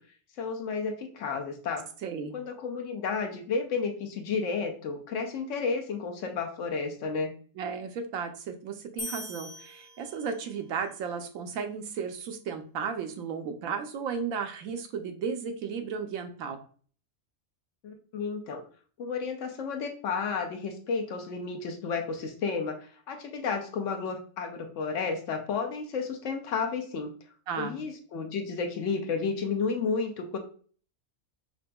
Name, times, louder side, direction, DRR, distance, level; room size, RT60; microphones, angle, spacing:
voice 1, 0.4-1.9 2.3-7.3 17.8-18.6 19.0-27.1 27.6-30.4, left 5 dB, 70° left, 4 dB, 1.0 m, -32 dB
voice 2, 2.0-2.3 7.6-16.6 27.5-27.8, right 6 dB, 80° right, 6 dB, 1.1 m, -34 dB
sound 1, 9.0-10.6, left 3 dB, 45° left, 0.6 m, -41 dB
5.6 x 2.5 x 2.2 m, 0.43 s
omnidirectional pair, 1.4 m